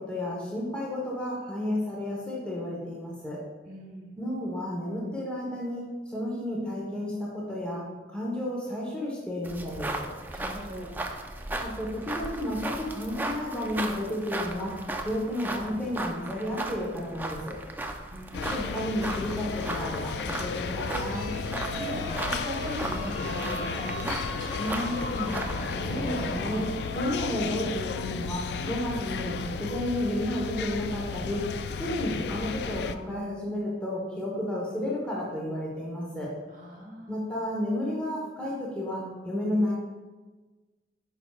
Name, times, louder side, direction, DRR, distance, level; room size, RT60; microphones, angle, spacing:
voice 1, 0.0-3.4 4.2-10.1 11.6-17.6 18.3-21.3 24.6-25.4 25.8-31.4 31.8-36.3 37.1-39.7, left 1 dB, 5° left, -5 dB, 1.1 m, -32 dB
voice 2, 3.6-4.2 10.3-10.9 18.1-18.7 21.7-24.8 36.5-37.4, equal, 45° right, 1 dB, 1.2 m, -39 dB
sound 1, 9.4-25.8, right 2 dB, 10° right, 0.4 m, -36 dB
sound 2, 18.3-33.0, left 5 dB, 65° left, 0.3 m, -34 dB
sound 3, 20.8-27.1, equal, 45° left, 1.3 m, -38 dB
9.3 x 5.7 x 2.4 m, 1.3 s
head